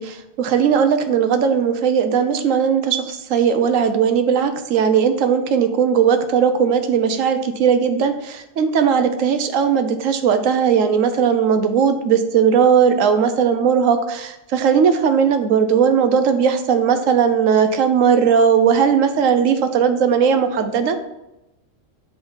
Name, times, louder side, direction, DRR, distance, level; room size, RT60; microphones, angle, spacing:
voice 1, 0.0-21.0, right 7 dB, 85° right, 9 dB, 1.0 m, -17 dB
7.1 x 3.8 x 3.8 m, 0.92 s
omnidirectional pair, 1.3 m